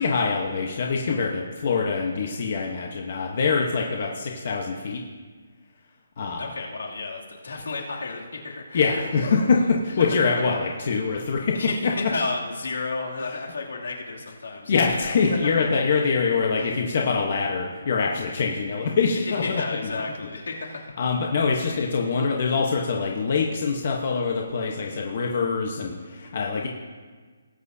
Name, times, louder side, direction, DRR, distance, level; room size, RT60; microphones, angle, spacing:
voice 1, 0.0-5.0 6.2-6.5 8.7-11.6 11.8-11.9 13.2-13.4 14.7-20.0 20.7-26.7, left 5 dB, 40° left, 0 dB, 1.1 m, -24 dB
voice 2, 6.4-9.0 10.5-10.6 11.5-15.6 16.6-16.7 19.2-21.1, left 3 dB, 80° left, -2 dB, 2.7 m, -32 dB
19.0 x 9.0 x 2.8 m, 1.5 s
hypercardioid pair, 175°, 0 cm